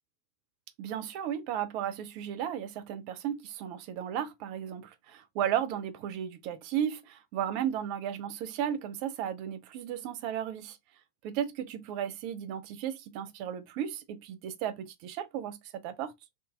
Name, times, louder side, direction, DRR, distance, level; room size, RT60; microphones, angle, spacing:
voice 1, 0.8-10.8 11.2-16.1, right 9 dB, 45° right, 0.5 m, -34 dB
3.5 x 2.7 x 2.4 m
figure-of-eight pair, 90°, 0 cm